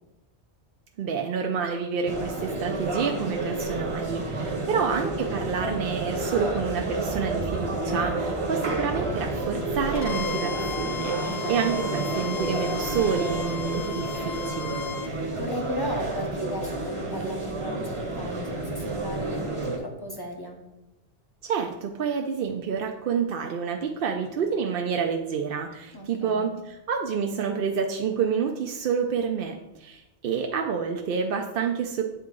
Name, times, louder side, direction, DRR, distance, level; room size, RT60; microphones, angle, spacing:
voice 1, 1.0-14.8 21.4-32.0, right 6 dB, 60° right, 2 dB, 0.7 m, -28 dB
sound 1, 2.1-19.8, right 2 dB, 30° right, 0.9 m, -30 dB
voice 2, 4.7-5.0 11.3-11.5 15.0-19.5 19.8-20.6 25.9-26.5, equal, 25° left, 1 dB, 0.8 m, -35 dB
Bowed string instrument, 10.0-15.1, left 6 dB, 55° left, 0.5 m, -36 dB
8.0 x 3.7 x 3.7 m, 0.90 s
omnidirectional pair, 1.1 m